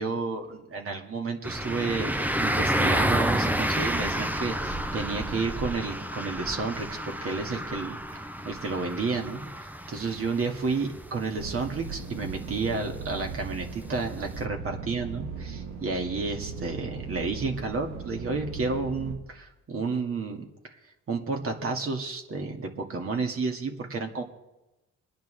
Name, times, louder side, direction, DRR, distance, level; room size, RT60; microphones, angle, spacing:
voice 1, 0.0-9.4 9.9-20.5 21.1-24.2, right 4 dB, 45° right, 2 dB, 2.2 m, -31 dB
sound 1, 1.4-14.5, right 1 dB, 5° right, 0.6 m, -30 dB
sound 2, 11.4-19.1, right 5 dB, 70° right, 2.3 m, -38 dB
23.0 x 10.0 x 3.4 m, 0.99 s
cardioid pair, 90°, 30 cm